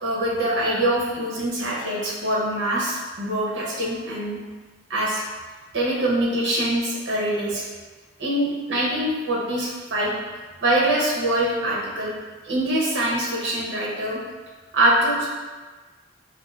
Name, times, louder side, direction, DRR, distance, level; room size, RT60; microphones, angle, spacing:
voice 1, 0.0-4.4 4.9-5.2 5.7-7.6 8.2-10.2 10.6-12.1 12.4-14.2 14.7-15.3, right 1 dB, 65° right, -5 dB, 0.8 m, -24 dB
3.6 x 2.3 x 2.5 m, 1.3 s
head